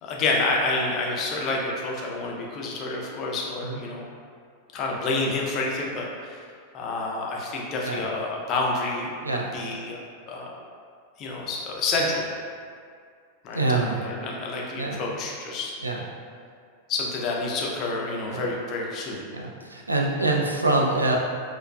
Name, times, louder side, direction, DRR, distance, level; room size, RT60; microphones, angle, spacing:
voice 1, 0.0-4.1 4.7-6.4 6.7-9.1 9.5-10.0 10.3-10.5 11.2-12.3 13.4-15.7 16.9-19.3, left 2 dB, 35° left, -2 dB, 0.5 m, -28 dB
voice 2, 9.2-9.6 13.5-14.0 14.8-15.0 15.8-16.0 18.3-18.5 19.3-21.2, right 2 dB, 80° right, -1 dB, 0.3 m, -25 dB
4.4 x 2.3 x 2.3 m, 2.2 s
figure-of-eight pair, 90°, 0 cm